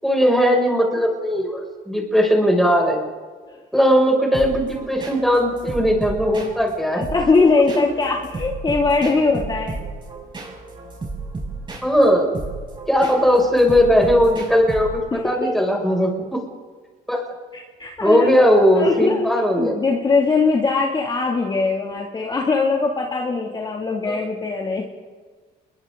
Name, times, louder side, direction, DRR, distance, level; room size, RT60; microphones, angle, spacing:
voice 1, 0.0-3.1 3.7-7.0 11.8-12.3 12.9-16.4 17.1-17.2 18.0-19.7 24.0-24.2, equal, ahead, 0 dB, 6.9 m, -18 dB
sound 1, 4.3-15.2, right 3 dB, 30° right, 6.9 m, -33 dB
voice 2, 6.9-9.8 15.1-15.7 17.5-18.4 18.8-19.3 19.6-24.8, left 4 dB, 25° left, -1 dB, 2.9 m, -21 dB
29.0 x 22.5 x 4.0 m, 1.5 s
cardioid pair, 110°, 17 cm